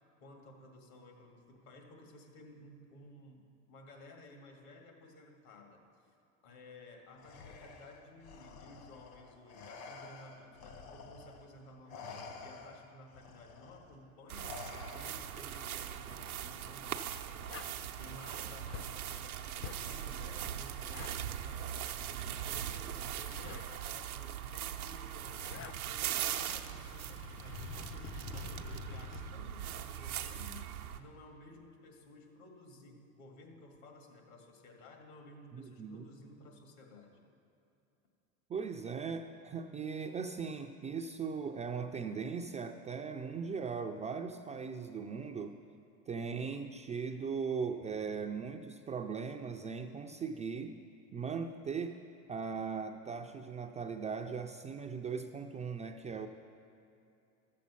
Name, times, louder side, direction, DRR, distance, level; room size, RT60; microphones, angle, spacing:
voice 1, 0.2-5.8 6.4-14.6 14.9-17.7 18.0-21.8 22.2-37.2, left 2 dB, 70° left, 2 dB, 2.1 m, -55 dB
Respiratory sounds, 7.2-11.5 11.9-15.5 16.8-17.0 18.0-18.5 19.7-20.4, left 4 dB, 55° left, 1.5 m, -51 dB
sound 1, 14.3-31.0, right 10 dB, 90° right, 0.7 m, -40 dB
sound 2, 17.5-17.8 18.7-19.0 19.6-19.9 20.8-21.2 22.7-23.7 25.0-25.8 26.3-29.4 30.3-30.5, left 8 dB, 30° left, 0.6 m, -47 dB
voice 2, 35.5-36.1 38.5-45.6 46.1-50.8 51.1-52.0 52.3-56.3, right 5 dB, 20° right, 4 dB, 0.4 m, -39 dB
13.5 x 7.4 x 5.6 m, 2.7 s
hypercardioid pair, 90°, 42 cm